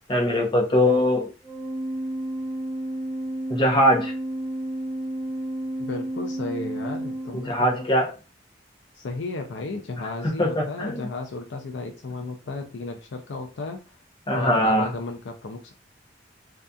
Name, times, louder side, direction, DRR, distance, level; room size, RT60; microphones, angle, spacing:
voice 1, 0.1-1.3 3.5-4.1 7.3-8.1 10.4-11.0 14.3-14.9, equal, 25° left, 0 dB, 0.7 m, -21 dB
Organ, 1.4-8.0, right 1 dB, ahead, 1.0 m, -31 dB
voice 2, 5.8-7.8 8.9-13.8 14.3-15.7, left 3 dB, 70° left, 4 dB, 0.4 m, -34 dB
2.6 x 2.4 x 2.2 m, 0.30 s
head